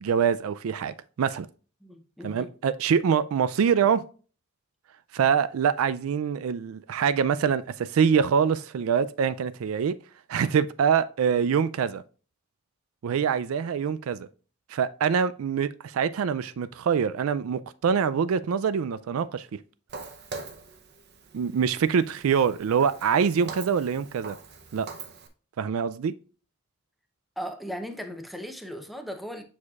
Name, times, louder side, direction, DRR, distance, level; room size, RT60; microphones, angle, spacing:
voice 1, 0.0-1.5 2.2-4.0 5.1-10.0 10.3-12.0 13.0-14.3 14.7-19.5 21.3-24.4 24.7-24.9 25.6-26.1, right 7 dB, 85° right, 0.4 m, -25 dB
voice 2, 1.8-2.5 27.4-29.4, equal, ahead, 0.7 m, -37 dB
Walk footsteps, 19.9-25.3, right 4 dB, 50° right, 0.7 m, -43 dB
7.3 x 6.3 x 2.4 m
head